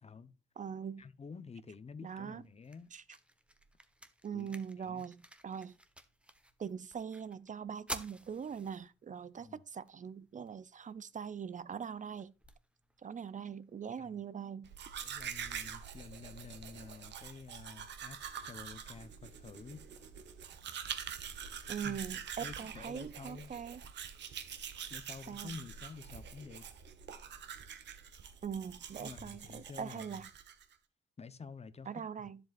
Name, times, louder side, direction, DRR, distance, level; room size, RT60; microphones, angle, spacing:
voice 1, 0.0-0.3 1.0-2.9 4.3-5.0 9.4-9.6 14.0-14.2 15.0-19.8 21.8-22.0 22.4-23.5 24.9-26.7 29.0-30.2 31.2-32.3, left 5 dB, 35° left, 0.9 m, -50 dB
voice 2, 0.6-1.0 2.0-2.4 2.9-3.0 4.2-5.7 6.6-12.3 13.0-14.7 21.7-23.8 25.3-25.5 28.4-30.3 31.9-32.4, right 7 dB, 45° right, 0.6 m, -42 dB
sound 1, 2.1-14.1, right 1 dB, 5° right, 1.3 m, -52 dB
Domestic sounds home sounds, 14.6-30.7, right 8 dB, 70° right, 1.4 m, -45 dB
10.5 x 7.8 x 2.6 m
supercardioid pair, 65°, 19 cm